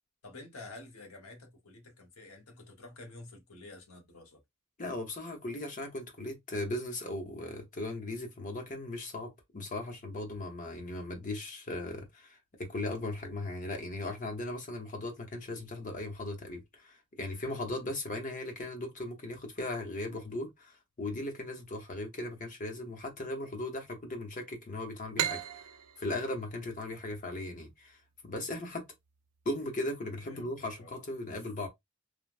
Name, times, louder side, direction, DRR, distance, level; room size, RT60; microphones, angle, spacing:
voice 1, 0.2-4.4 30.2-30.9, left 2 dB, 80° left, 1.0 m, -50 dB
voice 2, 4.8-25.7 26.0-28.0 28.2-28.8 29.4-31.7, left 2 dB, 35° left, 0.8 m, -38 dB
sound 1, 25.2-28.6, right 10 dB, 85° right, 0.4 m, -37 dB
3.3 x 2.1 x 2.4 m
head